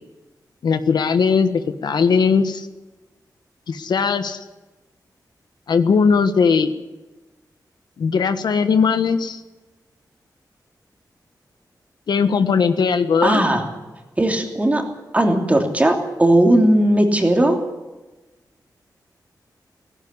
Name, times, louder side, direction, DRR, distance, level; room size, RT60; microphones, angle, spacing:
voice 1, 0.6-2.7 3.7-4.4 5.7-6.7 8.0-9.4 12.1-13.4, left 5 dB, 80° left, 9 dB, 1.4 m, -18 dB
voice 2, 13.2-13.6 14.2-14.8 15.1-17.6, right 1 dB, 20° right, 3 dB, 3.0 m, -17 dB
17.0 x 16.5 x 9.7 m, 1.1 s
wide cardioid pair, 125°, 7 cm